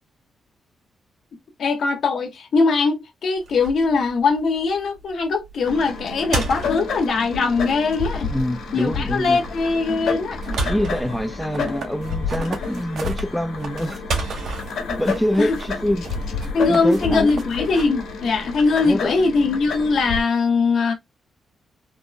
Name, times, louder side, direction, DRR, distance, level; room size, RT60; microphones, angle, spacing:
voice 1, 1.6-8.3 8.7-10.6 15.4-15.5 16.5-20.9, left 4 dB, 65° left, 0.8 m, -21 dB
sound 1, 3.4-18.5, right 3 dB, 80° right, 1.7 m, -34 dB
sound 2, 5.6-20.2, left 4 dB, 90° left, 1.2 m, -30 dB
voice 2, 8.3-9.4 10.6-14.4 15.0-16.0 16.6-17.3 18.8-19.2, left 1 dB, ahead, 0.3 m, -25 dB
sound 3, 10.3-13.2 13.6-17.8, right 3 dB, 60° right, 0.7 m, -36 dB
3.5 x 2.0 x 2.5 m
wide cardioid pair, 140°, 0 cm